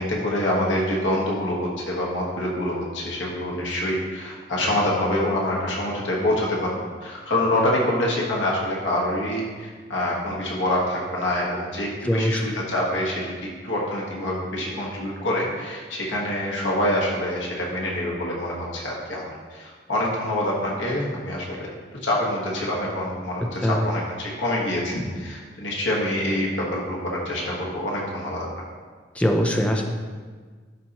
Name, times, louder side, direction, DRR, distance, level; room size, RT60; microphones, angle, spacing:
voice 1, 0.0-6.7 7.0-13.3 13.6-21.7 22.0-28.5, left 1 dB, 80° left, -3 dB, 1.4 m, -26 dB
voice 2, 12.0-12.4 23.6-23.8 29.2-29.8, equal, 5° left, 2 dB, 0.6 m, -21 dB
12.0 x 4.3 x 2.9 m, 1.5 s
head